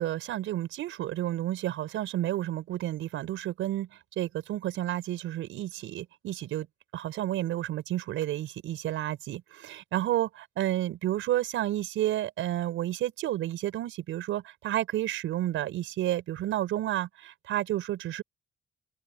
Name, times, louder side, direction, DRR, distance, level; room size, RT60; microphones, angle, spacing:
voice 1, 0.0-3.9 4.2-6.7 6.9-18.2, right 13 dB, 85° right, 5.8 m, -31 dB
open air
cardioid pair, 90°, 20 cm